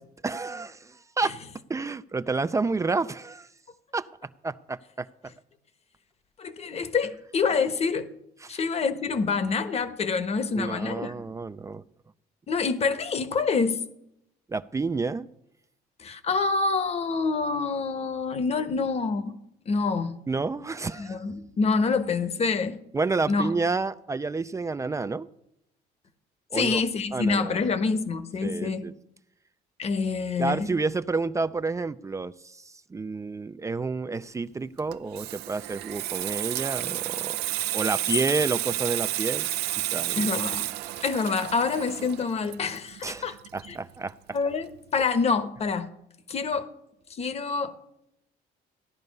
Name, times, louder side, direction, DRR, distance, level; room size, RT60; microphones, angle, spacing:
voice 1, 0.2-1.4 1.7-3.5 3.9-4.1 4.4-5.1 8.4-8.5 10.6-11.8 14.5-15.3 20.3-21.2 22.9-25.3 26.5-26.8 27.1-27.6 28.4-28.9 30.4-32.6 32.9-37.4 37.7-39.5 39.9-40.3 43.0-44.1, right 3 dB, 20° right, 0.4 m, -29 dB
voice 2, 6.4-8.1 8.5-11.1 12.5-13.8 16.0-19.3 19.7-20.2 21.0-22.8 23.3-23.5 26.5-28.9 29.8-30.7 40.2-40.7 41.0-43.4 43.7-43.8 44.3-45.9 46.3-46.7 47.1-47.7, left 4 dB, 40° left, 1.1 m, -26 dB
Water tap faucet / Sink (filling or washing), 34.8-44.1 44.4-44.6, right 15 dB, 80° right, 0.5 m, -31 dB
15.5 x 10.5 x 5.4 m
cardioid pair, 110°, 17 cm